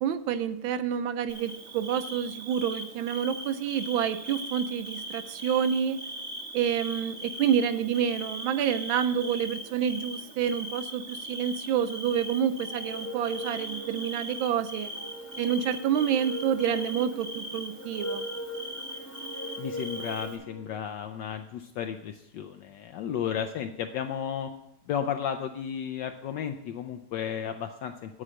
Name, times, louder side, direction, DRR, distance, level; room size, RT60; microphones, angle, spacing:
voice 1, 0.0-6.0 6.5-14.9 15.4-18.3, right 8 dB, 75° right, 12 dB, 1.3 m, -28 dB
Bird / Cricket, 1.3-20.4, equal, 40° right, 1.3 m, -40 dB
sound 1, 12.6-20.8, right 1 dB, 15° left, 0.6 m, -40 dB
voice 2, 19.6-24.5 24.9-28.2, left 8 dB, 75° left, 6 dB, 1.0 m, -33 dB
9.7 x 4.9 x 7.5 m, 0.83 s
omnidirectional pair, 2.4 m